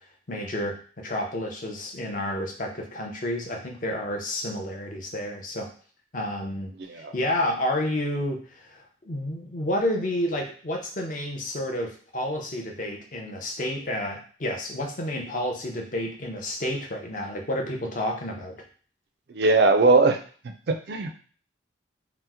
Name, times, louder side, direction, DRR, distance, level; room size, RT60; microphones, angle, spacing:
voice 1, 0.3-5.7 6.1-18.6, left 1 dB, 40° left, 2 dB, 0.6 m, -30 dB
voice 2, 19.3-20.2 20.7-21.1, right 3 dB, 55° right, 7 dB, 0.4 m, -20 dB
2.9 x 2.0 x 3.5 m, 0.42 s
head